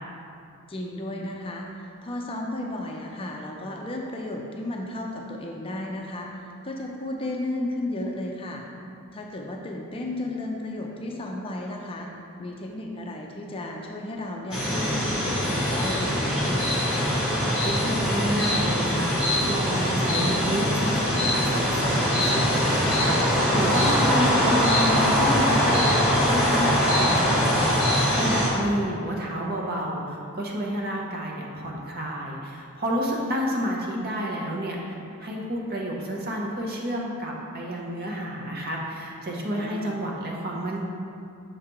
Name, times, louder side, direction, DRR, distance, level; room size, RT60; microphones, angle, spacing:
voice 1, 0.7-8.6 9.1-12.1 12.4-17.1 28.5-28.7 39.5-40.0, left 1 dB, 25° left, 0 dB, 0.4 m, -34 dB
sound 1, 14.5-28.5, equal, 5° right, 1.3 m, -22 dB
voice 2, 17.6-40.8, equal, 45° right, -2 dB, 0.8 m, -30 dB
6.5 x 4.9 x 2.9 m, 2.6 s
head